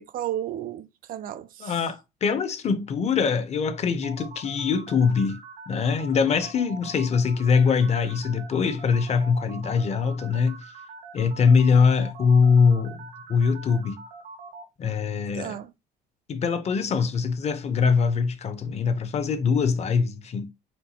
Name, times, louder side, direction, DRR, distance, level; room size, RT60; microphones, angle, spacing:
voice 1, 0.0-1.7 15.4-15.7, right 11 dB, 55° right, 0.4 m, -33 dB
voice 2, 1.6-5.4 5.7-10.6 11.1-14.0 14.8-15.6 16.3-20.5, left 5 dB, 40° left, 0.7 m, -23 dB
sound 1, 4.0-14.6, right 4 dB, 85° right, 1.4 m, -43 dB
4.4 x 3.2 x 2.8 m
cardioid pair, 110°, 17 cm